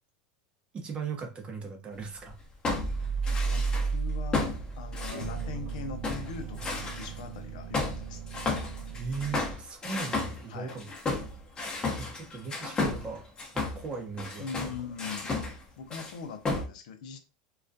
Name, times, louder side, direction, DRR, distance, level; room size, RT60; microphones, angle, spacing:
voice 1, 0.7-2.4 9.0-10.9 12.0-13.3 13.5-14.5, right 5 dB, 30° right, 0.6 m, -38 dB
sound 1, 2.2-3.9 4.3-5.7 6.0-7.2 7.7-15.6 15.9-16.2 16.4-16.6, left 3 dB, 20° left, 0.7 m, -33 dB
sound 2, 2.8-9.5, right 5 dB, 60° right, 0.9 m, -34 dB
voice 2, 3.3-8.4 10.5-10.8 14.4-17.2, left 5 dB, 75° left, 0.5 m, -42 dB
2.3 x 2.1 x 2.5 m
supercardioid pair, 115°, 4 cm